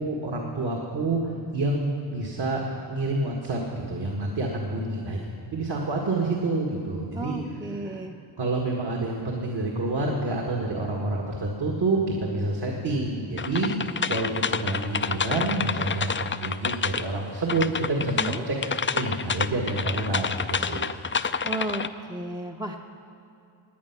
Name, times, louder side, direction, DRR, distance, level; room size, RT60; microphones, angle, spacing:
voice 1, 0.0-5.2 5.5-7.4 7.8-8.0 8.4-13.7 14.1-18.1 18.5-18.6 18.9-20.8, right 2 dB, 55° right, -1 dB, 1.9 m, -28 dB
voice 2, 7.1-8.1 18.2-18.4 21.4-22.8, right 2 dB, 10° right, 1 dB, 0.7 m, -33 dB
sound 1, 13.4-17.2 17.5-21.9, left 6 dB, 25° left, 0.4 m, -28 dB
18.0 x 9.6 x 6.0 m, 2.6 s
cardioid pair, 70°, 48 cm